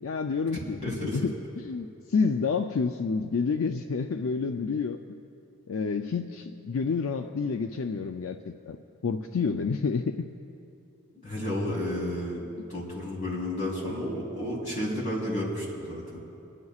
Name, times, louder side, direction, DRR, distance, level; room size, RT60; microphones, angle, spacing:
voice 1, 0.0-5.0 5.7-8.8 9.0-10.3, left 5 dB, 70° left, 6 dB, 0.4 m, -29 dB
voice 2, 0.8-1.2 11.2-12.4 12.7-16.2, left 1 dB, 35° left, -5 dB, 3.6 m, -31 dB
28.5 x 11.0 x 2.4 m, 2.7 s
head